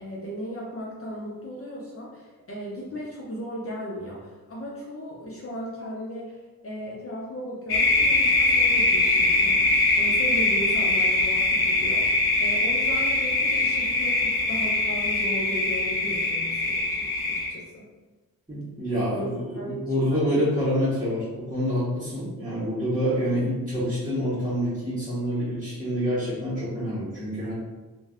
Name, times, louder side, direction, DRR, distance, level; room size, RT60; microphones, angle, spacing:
voice 1, 0.0-6.4 6.6-17.9 19.0-19.3 19.5-20.4, equal, 40° left, -5 dB, 0.6 m, -36 dB
sound 1, 7.7-17.5, left 2 dB, 85° left, 0.6 m, -22 dB
voice 2, 18.5-27.5, equal, 10° right, -11 dB, 0.9 m, -27 dB
2.5 x 2.2 x 3.4 m, 1.2 s
wide cardioid pair, 125°, 37 cm